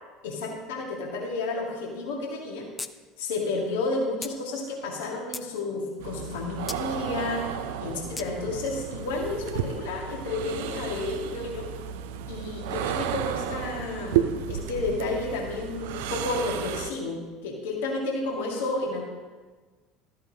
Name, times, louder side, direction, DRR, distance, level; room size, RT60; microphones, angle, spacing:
voice 1, 0.2-2.7 3.2-7.5 7.8-11.7 12.3-19.0, left 3 dB, 65° left, -1 dB, 1.8 m, -31 dB
sound 1, 2.8-2.9 3.2-3.3 4.2-4.4 5.0-5.5 6.7-6.8 8.2-8.3, left 4 dB, 20° left, 0.4 m, -36 dB
sound 2, 6.0-16.9, right 9 dB, 60° right, 0.5 m, -33 dB
13.0 x 8.4 x 2.8 m, 1.4 s
figure-of-eight pair, 65°, 0 cm